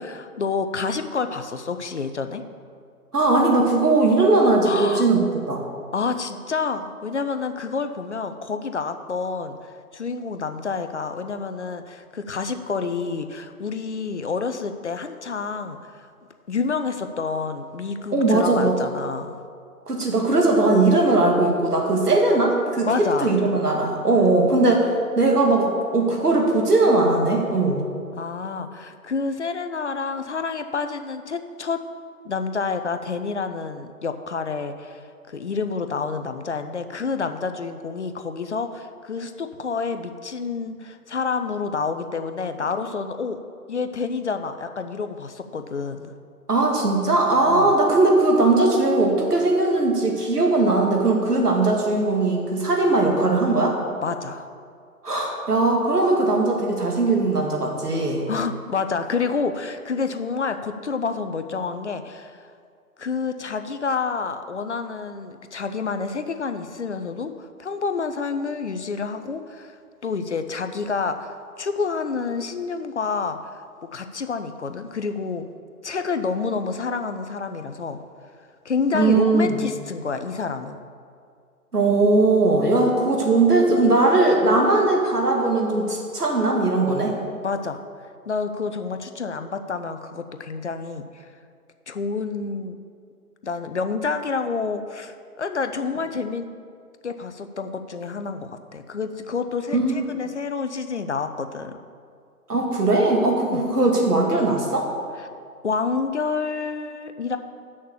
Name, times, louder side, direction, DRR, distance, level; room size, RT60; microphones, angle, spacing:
voice 1, 0.0-2.4 4.6-5.1 5.9-16.1 16.5-19.4 22.9-23.3 28.2-31.8 32.2-43.4 43.7-46.1 47.5-47.7 54.0-54.5 58.3-62.4 63.0-73.6 73.9-75.5 75.8-78.0 78.6-80.8 87.4-87.8 88.3-91.3 91.9-92.8 93.4-96.5 97.0-101.8 103.5-103.6 105.2-105.3 105.6-107.4, left 5 dB, 50° left, 8 dB, 0.5 m, -28 dB
voice 2, 3.1-5.6 18.1-18.7 19.9-22.9 23.2-24.9 25.2-27.9 46.5-53.8 55.0-58.3 78.9-79.6 81.7-87.1 99.7-100.2 102.5-104.9, right 2 dB, 80° right, 1 dB, 2.1 m, -19 dB
7.4 x 6.4 x 7.1 m, 2.2 s
figure-of-eight pair, 150°, 46 cm